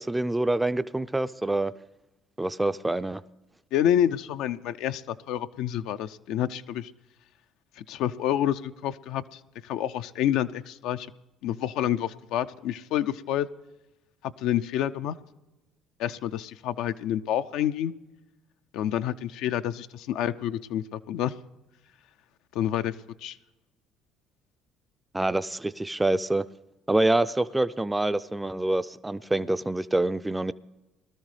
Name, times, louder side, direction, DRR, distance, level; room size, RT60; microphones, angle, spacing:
voice 1, 0.0-1.7 2.4-3.2 25.1-26.4 26.9-30.5, right 2 dB, 10° right, 0.3 m, -26 dB
voice 2, 3.7-6.9 7.8-11.1 11.4-13.5 14.4-15.2 16.0-17.9 18.7-21.3 22.5-22.9 23.2-23.4, left 11 dB, 70° left, 0.3 m, -28 dB
20.0 x 13.0 x 3.2 m
hypercardioid pair, 65°, 0 cm